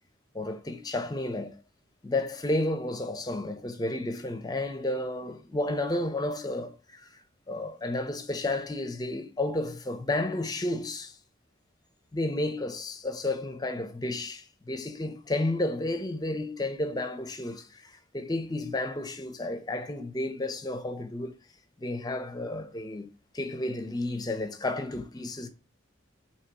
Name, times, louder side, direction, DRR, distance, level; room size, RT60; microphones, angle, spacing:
voice 1, 0.3-1.5 2.0-7.2 7.5-11.2 12.1-21.3 21.8-23.1 23.3-25.5, left 2 dB, 20° left, 0.5 m, -32 dB
3.9 x 2.9 x 4.6 m
head